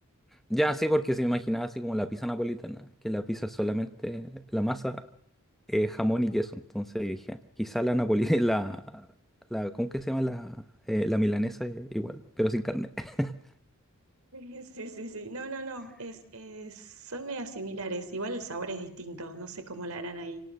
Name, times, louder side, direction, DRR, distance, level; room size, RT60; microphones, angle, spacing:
voice 1, 0.5-5.0 5.7-9.1 9.5-10.6 10.9-13.3, equal, ahead, 10 dB, 0.8 m, -29 dB
voice 2, 14.3-20.4, right 2 dB, 75° right, 7 dB, 3.4 m, -38 dB
27.5 x 18.5 x 6.5 m, 0.66 s
head